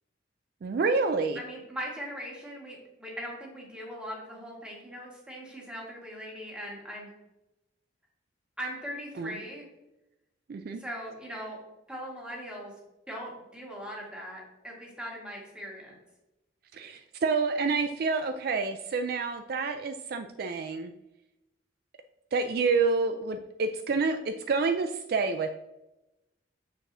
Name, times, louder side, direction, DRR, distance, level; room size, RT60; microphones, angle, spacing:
voice 1, 0.6-1.4 9.2-9.4 10.5-10.8 16.7-20.9 22.3-25.5, right 4 dB, 55° right, 8 dB, 0.3 m, -28 dB
voice 2, 1.3-7.1 8.6-9.7 10.8-11.6 11.9-12.7 13.1-16.0, equal, 5° right, -2 dB, 1.6 m, -40 dB
6.6 x 6.1 x 2.6 m, 0.95 s
head